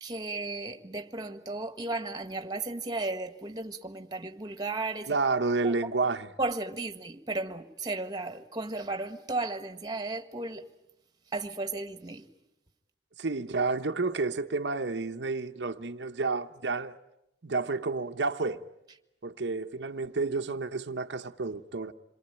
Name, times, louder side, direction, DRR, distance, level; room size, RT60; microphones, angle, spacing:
voice 1, 0.0-5.1 5.6-5.7 6.4-10.7 11.3-12.3, right 2 dB, 25° right, 1.5 m, -34 dB
voice 2, 5.1-6.3 13.2-17.0 17.4-18.6 19.2-21.9, right 3 dB, 80° right, 0.9 m, -30 dB
27.5 x 23.0 x 9.0 m
head